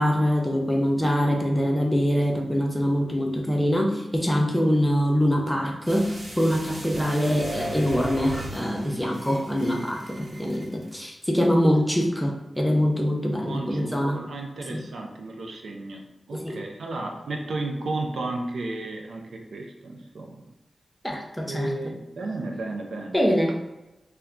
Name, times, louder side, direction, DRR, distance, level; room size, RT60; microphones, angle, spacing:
voice 1, 0.0-14.2 14.7-14.8 16.4-16.6 21.0-21.7 23.1-23.5, equal, 5° left, 0 dB, 0.7 m, -24 dB
sound 1, 5.8-10.9 11.2-11.3, right 1 dB, 55° right, 1.2 m, -37 dB
voice 2, 13.4-16.0 16.3-20.5 21.5-23.2, right 2 dB, 80° right, 2 dB, 0.4 m, -33 dB
2.2 x 2.1 x 3.6 m, 0.99 s
cardioid pair, 40°, 0 cm